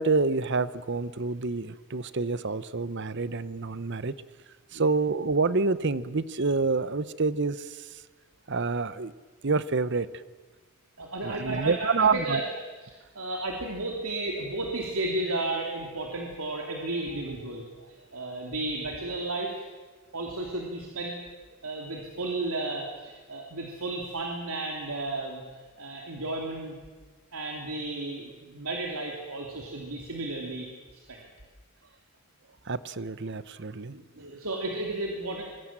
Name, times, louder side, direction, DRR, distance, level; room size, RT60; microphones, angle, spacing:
voice 1, 0.0-4.1 4.7-7.9 8.5-9.1 9.4-10.1 11.2-12.4 32.7-33.9, right 4 dB, 55° right, 16 dB, 0.9 m, -27 dB
voice 2, 11.0-12.5 12.8-19.7 20.1-21.1 21.6-25.4 25.8-26.7 27.3-30.7 30.9-31.2 33.9-35.4, right 2 dB, 75° right, 0 dB, 3.2 m, -33 dB
26.0 x 22.5 x 7.5 m, 1.3 s
head